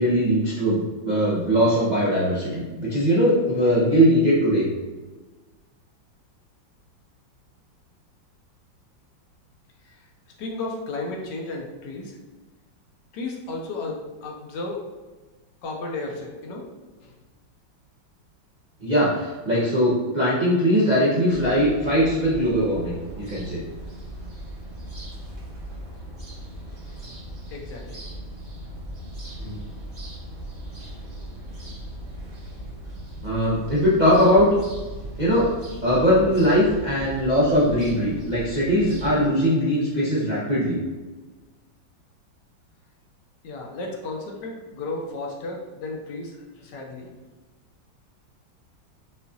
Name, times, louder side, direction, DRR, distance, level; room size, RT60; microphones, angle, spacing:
voice 1, 0.0-4.6 18.8-23.6 29.4-29.6 33.2-34.5 35.2-35.5 35.8-40.8, equal, 90° right, -8 dB, 0.4 m, -20 dB
voice 2, 10.4-12.2 13.1-14.9 15.6-16.7 17.0-17.1 27.5-28.0 29.3-29.4 43.4-47.1, left 2 dB, 75° left, 0 dB, 1.2 m, -34 dB
sound 1, 21.3-39.3, right 1 dB, 30° right, 0.6 m, -38 dB
5.6 x 2.4 x 2.7 m, 1.2 s
omnidirectional pair, 2.1 m